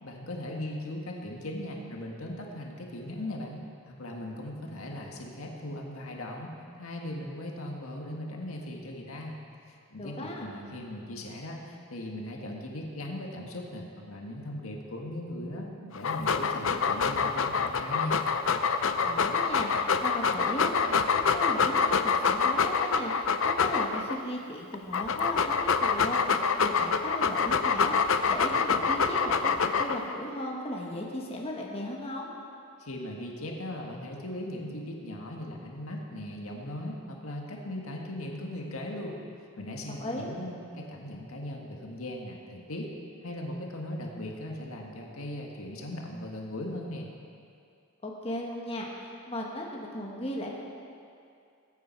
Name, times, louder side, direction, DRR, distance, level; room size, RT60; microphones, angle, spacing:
voice 1, 0.0-3.6 3.8-9.4 9.7-18.2 32.8-39.2 39.6-42.9 43.2-47.1, left 1 dB, 80° left, 0 dB, 1.7 m, -38 dB
voice 2, 9.9-10.5 19.0-32.3 40.0-40.4 48.0-50.5, left 1 dB, 25° left, -2 dB, 1.5 m, -36 dB
Dog, 15.9-24.2 24.7-30.1, left 5 dB, 65° left, 0.6 m, -26 dB
20.0 x 8.8 x 4.6 m, 2.4 s
head